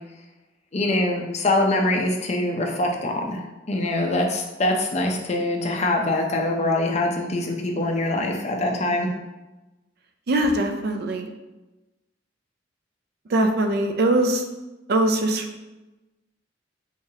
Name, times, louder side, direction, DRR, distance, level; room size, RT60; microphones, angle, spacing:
voice 1, 0.7-9.1, left 2 dB, 40° left, 1 dB, 0.5 m, -24 dB
voice 2, 10.3-11.3 13.3-14.4 14.9-15.7, right 1 dB, 55° right, 5 dB, 0.4 m, -22 dB
3.5 x 3.2 x 2.7 m, 1.1 s
head